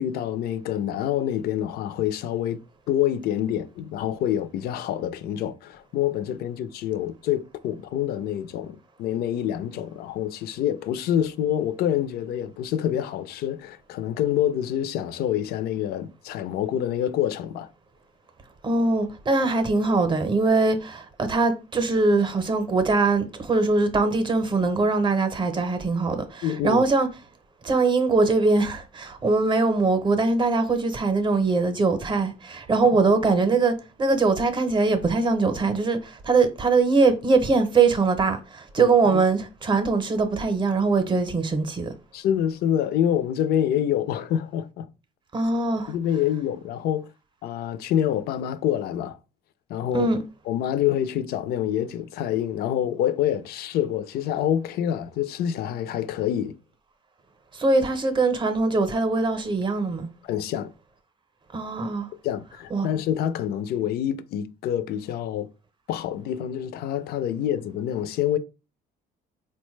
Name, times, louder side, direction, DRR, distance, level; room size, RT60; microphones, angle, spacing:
voice 1, 0.0-2.6 2.9-17.7 26.4-26.8 32.8-33.0 38.8-39.2 42.1-44.9 45.9-47.1 47.4-49.2 49.7-50.1 50.5-56.5 60.3-60.7 62.2-65.5 65.9-68.4, left 10 dB, 70° left, 0.4 m, -26 dB
voice 2, 18.6-27.1 27.6-41.9 45.3-45.9 49.9-50.2 57.5-60.1 61.5-62.1 62.7-62.9, right 3 dB, 30° right, 0.7 m, -22 dB
3.9 x 2.1 x 3.1 m
cardioid pair, 110°, 17 cm